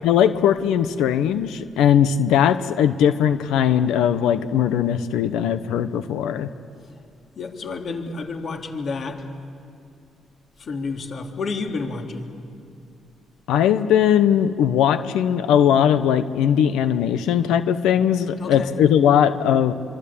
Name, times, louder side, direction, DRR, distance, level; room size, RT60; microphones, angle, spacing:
voice 1, 0.0-6.5 13.5-19.7, left 9 dB, 90° left, 11 dB, 1.0 m, -19 dB
voice 2, 7.4-9.3 10.6-12.4 18.4-18.7, left 4 dB, 55° left, 3 dB, 3.3 m, -30 dB
26.5 x 25.0 x 8.7 m, 2.4 s
cardioid pair, 90°, 0 cm